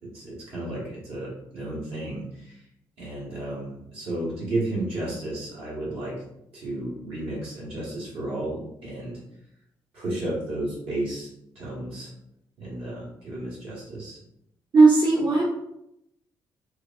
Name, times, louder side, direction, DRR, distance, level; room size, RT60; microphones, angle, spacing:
voice 1, 0.0-2.6 3.0-6.1 6.5-9.2 9.9-11.3 11.5-12.1 12.6-14.2, right 1 dB, 65° right, -7 dB, 1.4 m, -33 dB
voice 2, 14.7-15.4, right 3 dB, 45° right, -8 dB, 0.9 m, -16 dB
3.3 x 2.0 x 2.4 m, 0.81 s
hypercardioid pair, 45°, 11 cm